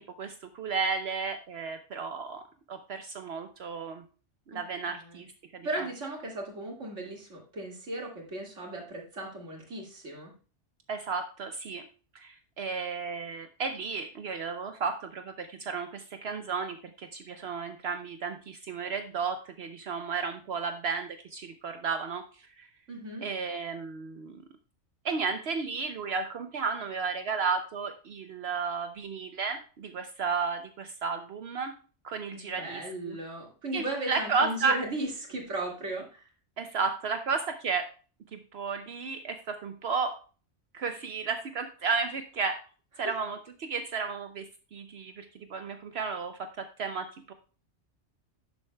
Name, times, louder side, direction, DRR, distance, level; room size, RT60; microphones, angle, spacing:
voice 1, 0.0-2.4 2.7-4.0 4.5-5.3 5.5-5.9 10.9-11.8 12.1-22.2 22.6-22.7 23.2-24.4 25.0-31.7 32.0-33.2 33.7-34.8 36.6-37.9 38.3-40.2 40.7-42.6 43.0-44.4 44.7-47.3, right 5 dB, 65° right, 7 dB, 0.9 m, -33 dB
voice 2, 4.5-5.2 5.6-10.3 22.9-23.3 32.3-36.3 43.0-43.1, right 1 dB, 85° right, 0 dB, 2.5 m, -37 dB
11.0 x 7.0 x 2.2 m, 0.36 s
omnidirectional pair, 1.2 m